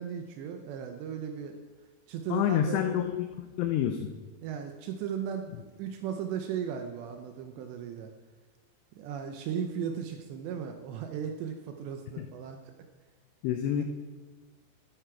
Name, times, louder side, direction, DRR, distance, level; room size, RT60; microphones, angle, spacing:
voice 1, 0.0-1.6 2.1-2.9 4.4-8.1 8.9-12.7 13.7-13.8, right 8 dB, 80° right, 5 dB, 2.7 m, -36 dB
voice 2, 2.3-4.1 12.2-12.3 13.4-13.8, left 10 dB, 90° left, 6 dB, 2.4 m, -28 dB
14.5 x 9.7 x 4.6 m, 1.3 s
omnidirectional pair, 5.7 m